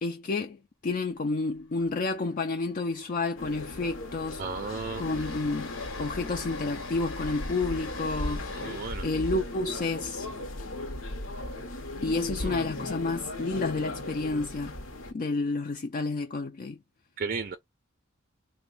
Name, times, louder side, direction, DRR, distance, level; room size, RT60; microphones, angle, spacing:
voice 1, 0.0-5.7 6.0-8.5 9.0-10.3 12.0-14.8 15.1-16.8, left 3 dB, 40° left, 0.4 m, -30 dB
Train, 1.6-1.9 2.1-2.3 2.7-12.8, left 3 dB, 85° left, 1.1 m, -44 dB
sound 1, 3.4-15.1, left 1 dB, 70° left, 0.8 m, -37 dB
voice 2, 4.4-5.0 8.6-9.0 12.4-12.5 17.2-17.6, right 4 dB, 45° right, 0.5 m, -34 dB
3.1 x 2.2 x 3.8 m
head